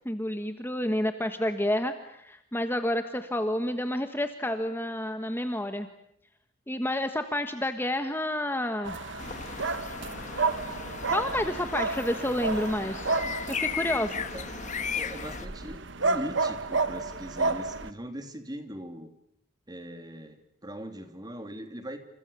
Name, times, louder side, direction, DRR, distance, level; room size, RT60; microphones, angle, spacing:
voice 1, 0.0-5.9 6.7-9.0 11.1-12.9 13.5-14.1, left 1 dB, 10° left, 7 dB, 1.4 m, -29 dB
sound 1, 8.5-13.4, left 3 dB, 75° left, 7.2 m, -46 dB
sound 2, 8.8-17.9, right 3 dB, 60° right, 1.2 m, -31 dB
sound 3, 9.2-15.5, left 6 dB, 40° left, 1.3 m, -36 dB
voice 2, 14.1-14.5 14.9-19.1 19.7-22.0, equal, 20° right, 7 dB, 3.1 m, -40 dB
29.0 x 28.5 x 6.9 m, 0.77 s
head